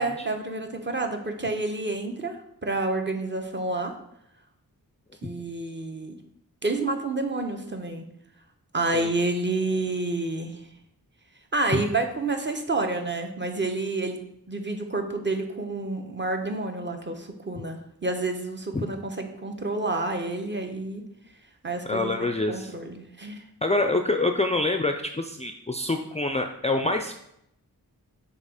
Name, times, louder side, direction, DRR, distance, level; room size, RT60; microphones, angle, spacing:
voice 1, 0.0-3.9 5.2-6.2 6.6-8.1 8.7-10.6 11.5-14.2 14.5-21.0 21.6-23.4, right 2 dB, 30° right, 4 dB, 0.9 m, -29 dB
voice 2, 21.9-22.7 23.6-27.1, left 2 dB, 20° left, 5 dB, 0.4 m, -26 dB
6.5 x 3.0 x 4.9 m, 0.77 s
wide cardioid pair, 65°, 37 cm